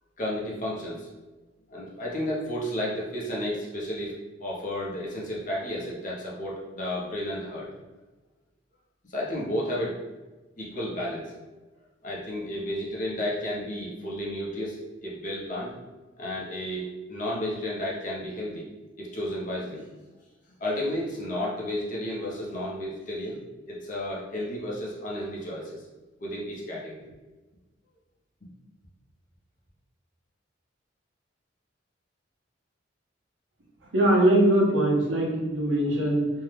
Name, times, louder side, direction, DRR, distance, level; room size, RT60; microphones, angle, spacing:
voice 1, 0.2-1.1 1.7-4.1 4.4-7.7 9.1-10.0 10.6-11.3 12.0-15.8 16.2-18.6 19.0-19.9 20.6-23.4 23.7-25.9 26.2-27.0, left 1 dB, 45° left, -5 dB, 0.8 m, -32 dB
voice 2, 33.9-36.3, right 1 dB, 85° right, -3 dB, 0.8 m, -21 dB
2.7 x 2.2 x 3.3 m, 1.2 s
head